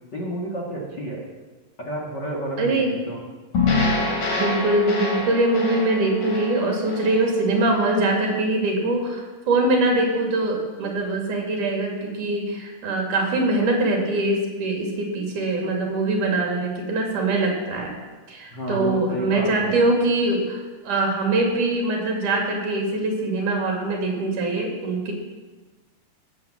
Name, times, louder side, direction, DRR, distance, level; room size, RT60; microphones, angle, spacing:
voice 1, 0.1-1.2 1.8-3.2 18.5-19.8, right 1 dB, 35° left, -2 dB, 2.2 m, -30 dB
voice 2, 2.6-2.9 4.0-17.9 18.3-25.1, right 2 dB, 70° right, 1 dB, 4.1 m, -23 dB
sound 1, 3.5-7.9, left 3 dB, 90° left, 5.5 m, -26 dB
17.5 x 7.7 x 7.4 m, 1.3 s
omnidirectional pair, 3.8 m